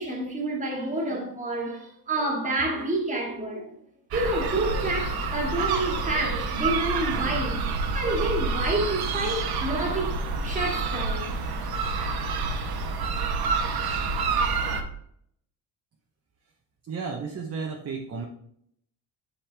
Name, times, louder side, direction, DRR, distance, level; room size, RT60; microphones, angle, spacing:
voice 1, 0.0-3.7 4.1-10.2 10.4-11.6 11.9-12.6, right 2 dB, 15° right, 2.0 m, -29 dB
sound 1, 4.1-14.8, right 4 dB, 55° right, 1.2 m, -28 dB
voice 2, 16.9-18.2, right 5 dB, 30° right, 1.0 m, -33 dB
9.0 x 5.6 x 3.4 m
cardioid pair, 160°, 45 cm